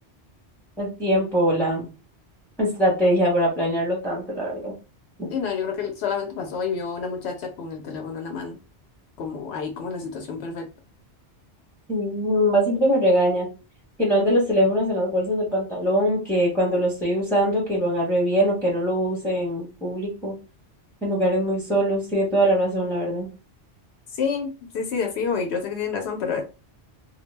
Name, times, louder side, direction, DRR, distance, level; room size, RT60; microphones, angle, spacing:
voice 1, 0.8-1.9 2.6-4.7 11.9-13.5 14.0-20.3 21.0-23.3, equal, ahead, -4 dB, 0.7 m, -22 dB
voice 2, 5.3-8.6 9.2-10.7 24.1-26.4, left 6 dB, 75° left, 3 dB, 0.8 m, -29 dB
2.3 x 2.0 x 3.2 m, 0.31 s
omnidirectional pair, 1.1 m